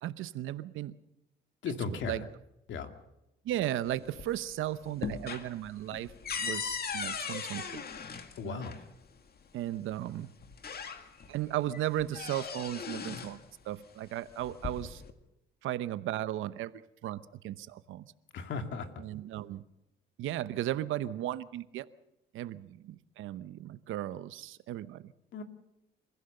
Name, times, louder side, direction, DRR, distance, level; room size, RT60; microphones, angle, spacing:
voice 1, 0.0-1.0 1.7-2.3 3.4-6.1 6.4-7.8 8.4-8.6 9.5-10.3 11.3-15.0 15.6-18.1 19.0-19.6 20.2-21.9 22.3-25.1, right 13 dB, 85° right, 14 dB, 0.9 m, -36 dB
voice 2, 1.6-2.2 2.7-2.9 8.4-8.8 18.3-18.9 25.3-25.4, left 5 dB, 70° left, 6 dB, 2.4 m, -36 dB
sound 1, 3.9-4.5 4.8-8.8 9.9-10.0 10.4-11.4 11.7-13.4 14.3-15.1, left 6 dB, 50° left, 2.2 m, -38 dB
28.5 x 15.5 x 6.7 m, 0.88 s
cardioid pair, 90°, 20 cm